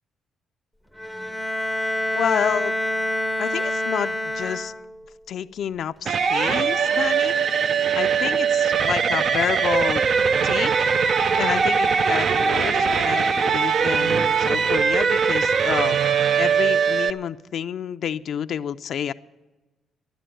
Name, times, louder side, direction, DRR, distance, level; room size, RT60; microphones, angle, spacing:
Bowed string instrument, 1.0-5.1, left 1 dB, 5° right, 0.6 m, -27 dB
voice 1, 2.1-2.7 3.4-4.7 5.3-7.3 7.9-10.0 10.4-10.9 11.4-16.0 16.4-19.1, left 9 dB, 65° left, 9 dB, 0.4 m, -29 dB
sound 1, 6.0-17.1, right 6 dB, 55° right, 0.5 m, -21 dB
12.5 x 9.9 x 7.8 m, 1.1 s
cardioid pair, 90°, 0 cm